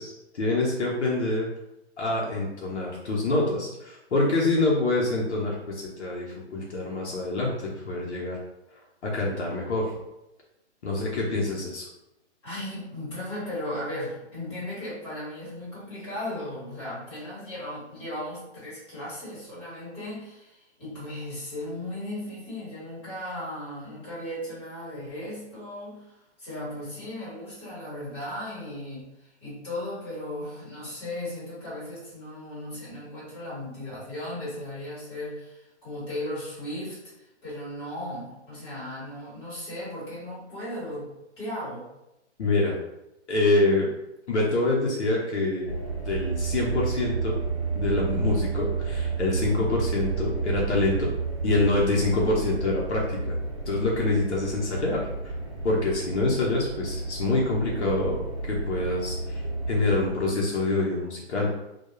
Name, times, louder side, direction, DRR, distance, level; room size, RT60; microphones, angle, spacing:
voice 1, 0.0-1.5 2.0-8.4 9.0-9.9 10.8-11.9 42.4-42.8 43.3-43.9 44.3-45.7 46.1-47.4 47.8-51.1 51.4-53.3 53.7-55.3 55.6-59.4 59.7-61.5, left 2 dB, 70° left, -3 dB, 0.7 m, -26 dB
voice 2, 12.4-41.9, left 1 dB, 20° left, -9 dB, 1.3 m, -36 dB
sound 1, 45.6-60.1, right 4 dB, 30° right, 0.8 m, -31 dB
2.2 x 2.2 x 3.0 m, 0.92 s
hypercardioid pair, 175°, 35 cm